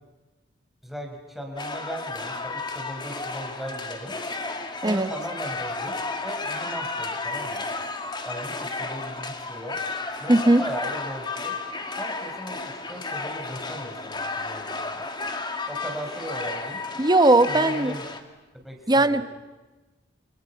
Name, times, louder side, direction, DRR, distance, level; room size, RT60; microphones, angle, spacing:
voice 1, 0.8-4.1 4.8-5.9 6.2-7.6 8.2-9.8 10.2-11.5 12.0-14.8 15.7-16.8 17.4-18.0 18.5-19.2, equal, ahead, 1 dB, 5.2 m, -37 dB
sound 1, 1.6-18.2, left 3 dB, 25° left, 2.1 m, -33 dB
voice 2, 10.3-10.6 17.0-17.9 18.9-19.2, right 2 dB, 20° right, 11 dB, 1.1 m, -18 dB
30.0 x 26.5 x 5.9 m, 1.2 s
head